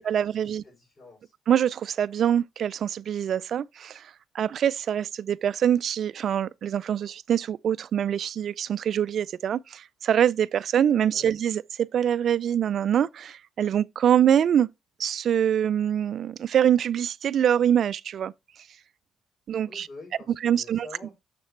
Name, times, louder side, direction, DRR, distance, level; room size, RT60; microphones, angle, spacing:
voice 1, 0.0-0.6 1.5-14.7 15.0-18.3 19.5-19.9 20.4-20.9, right 9 dB, 60° right, 0.4 m, -24 dB
voice 2, 0.6-1.3 11.1-11.3 19.6-21.1, left 2 dB, 40° left, 5.4 m, -47 dB
7.0 x 6.7 x 3.2 m
cardioid pair, 90°, 0 cm